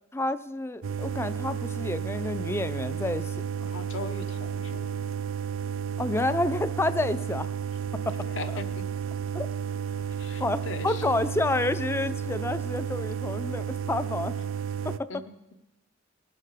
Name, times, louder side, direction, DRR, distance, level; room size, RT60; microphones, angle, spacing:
voice 1, 0.1-3.7 6.0-7.5 8.1-8.2 9.3-9.5 10.4-14.3 14.8-15.1, left 2 dB, 15° left, 14 dB, 0.3 m, -29 dB
sound 1, 0.8-15.0, right 7 dB, 80° right, 0.4 m, -32 dB
voice 2, 3.6-5.0 8.2-8.9 10.2-11.2 15.1-15.4, left 3 dB, 70° left, 7 dB, 1.0 m, -39 dB
19.0 x 6.6 x 4.9 m, 0.99 s
head